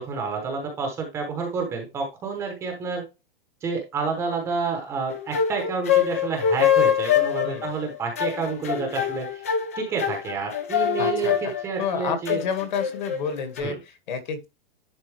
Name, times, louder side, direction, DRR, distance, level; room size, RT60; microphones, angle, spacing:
voice 1, 0.0-3.0 3.6-9.4 9.7-12.4 13.6-13.8, right 5 dB, 10° right, 0.9 m, -29 dB
sound 1, 5.1-13.6, left 9 dB, 15° left, 0.4 m, -24 dB
voice 2, 11.0-14.5, left 6 dB, 50° left, 2.0 m, -30 dB
11.0 x 3.8 x 3.3 m
hypercardioid pair, 180°, 29 cm